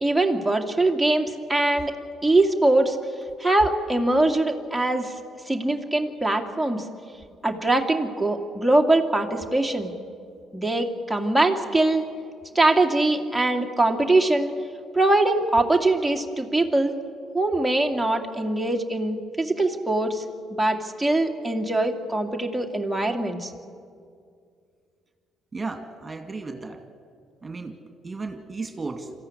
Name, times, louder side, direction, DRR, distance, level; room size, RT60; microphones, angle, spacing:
voice 1, 0.0-1.9 2.2-3.0 3.4-5.1 5.5-6.8 7.4-9.9 10.5-12.0 12.5-14.5 14.9-16.9 17.3-20.2 20.5-23.5, right 2 dB, 5° right, 1 dB, 2.3 m, -22 dB
voice 2, 25.5-26.8 27.4-27.8 28.0-29.1, right 3 dB, 30° right, 6 dB, 2.3 m, -34 dB
26.0 x 14.5 x 9.7 m, 2.3 s
hypercardioid pair, 50°, 0 cm